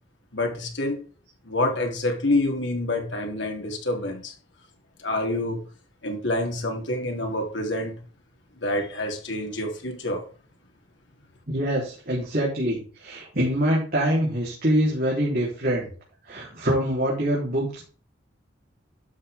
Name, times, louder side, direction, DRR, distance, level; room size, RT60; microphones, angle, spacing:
voice 1, 0.3-1.0 1.4-4.3 5.0-5.6 6.0-8.0 8.6-10.3, left 1 dB, 70° left, 2 dB, 3.3 m, -27 dB
voice 2, 11.5-15.9 16.3-17.8, equal, 45° right, -5 dB, 3.9 m, -24 dB
12.0 x 7.2 x 3.7 m, 0.40 s
head